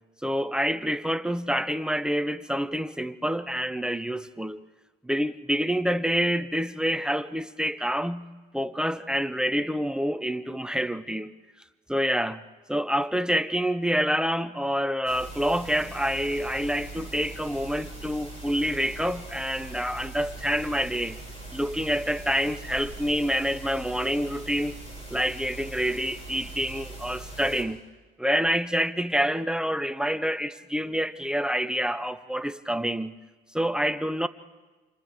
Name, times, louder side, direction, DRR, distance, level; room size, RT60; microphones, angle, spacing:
voice 1, 0.2-4.6 5.0-8.3 8.5-11.3 11.9-12.4 12.7-21.2 21.5-24.8 25.1-27.8 28.2-33.2 33.5-34.3, equal, 5° right, 0.6 m, -27 dB
sound 1, 15.0-27.6, right 2 dB, 35° left, 6.3 m, -41 dB
28.5 x 27.0 x 3.6 m
cardioid pair, 110°, 17 cm